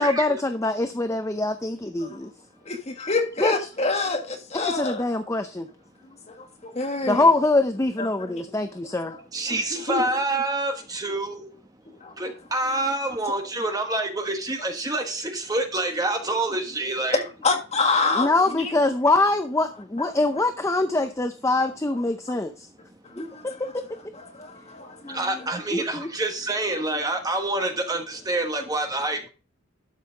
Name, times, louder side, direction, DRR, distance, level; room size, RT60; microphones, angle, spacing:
voice 1, 0.0-2.3 3.4-3.5 4.5-5.7 7.1-9.1 18.1-22.7 25.0-25.3 25.7-26.1, left 2 dB, 15° left, 0.5 m, -23 dB
voice 2, 2.7-5.1 6.3-7.3 8.0-8.5 9.1-9.2 9.5-10.0 12.0-12.1 17.1-18.7 21.6-21.7 23.0-23.6 24.1-25.2, left 3 dB, 30° left, 1.6 m, -27 dB
voice 3, 9.3-11.5 12.2-17.2 25.1-29.3, right 2 dB, 20° right, 1.2 m, -27 dB
12.0 x 5.6 x 4.0 m
head